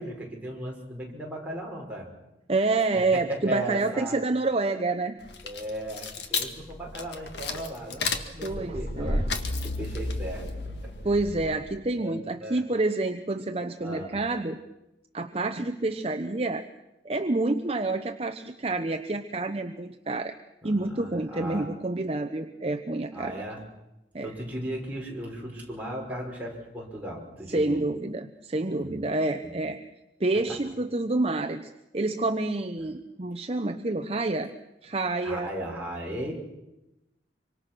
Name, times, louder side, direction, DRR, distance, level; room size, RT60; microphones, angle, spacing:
voice 1, 0.0-2.1 2.9-4.3 5.4-9.3 9.6-10.5 10.8-10.9 12.0-12.1 12.4-12.6 13.8-14.2 20.6-21.7 23.1-23.6 24.2-27.8 28.8-29.1 29.4-29.5 30.3-30.4 35.2-36.3, right 1 dB, 10° right, -3 dB, 5.5 m, -36 dB
voice 2, 2.5-5.2 8.4-9.2 11.0-14.6 15.1-16.7 17.0-20.3 20.6-23.4 24.1-24.3 27.5-29.8 30.2-34.5 34.8-35.5, right 2 dB, 35° right, 7 dB, 0.8 m, -28 dB
sound 1, 5.2-11.8, left 3 dB, 70° left, 1.9 m, -32 dB
25.5 x 25.0 x 6.2 m, 0.95 s
head